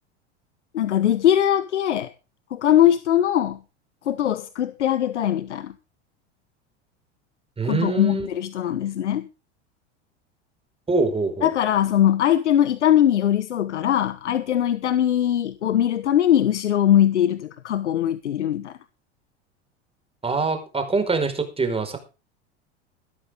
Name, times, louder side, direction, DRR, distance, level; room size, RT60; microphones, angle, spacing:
voice 1, 0.7-2.1 2.5-3.6 4.1-5.7 7.7-9.2 11.4-18.8, left 11 dB, 90° left, 1.2 m, -21 dB
voice 2, 7.6-8.3 10.9-11.5 20.2-22.0, right 3 dB, 15° right, 5.0 m, -24 dB
17.0 x 13.5 x 3.7 m
hypercardioid pair, 90°, 34 cm